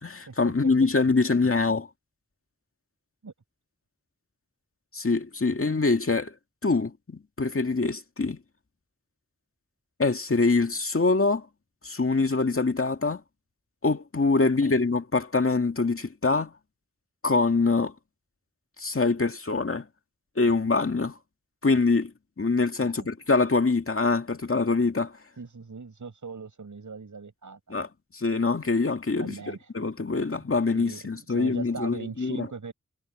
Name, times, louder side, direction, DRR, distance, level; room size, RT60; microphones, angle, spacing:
voice 1, 0.0-1.9 4.9-6.4 6.6-8.4 10.0-11.5 11.8-13.2 13.8-16.5 17.2-17.9 18.8-19.9 20.4-21.2 21.6-25.2 27.7-29.4 29.7-32.5, left 3 dB, 45° left, 2.1 m, -24 dB
voice 2, 25.4-27.9 29.2-29.7 30.7-32.7, right 4 dB, 85° right, 7.6 m, -40 dB
wide cardioid pair, 70°, 30 cm